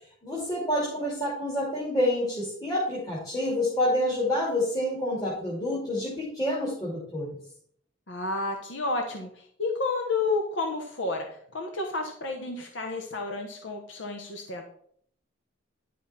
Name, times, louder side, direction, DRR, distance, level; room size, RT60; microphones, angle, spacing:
voice 1, 0.2-7.3, left 1 dB, 20° left, -6 dB, 2.5 m, -28 dB
voice 2, 8.1-9.3 9.6-11.3 11.5-14.6, left 3 dB, 75° left, 3 dB, 1.1 m, -30 dB
11.0 x 5.7 x 4.3 m, 0.63 s
head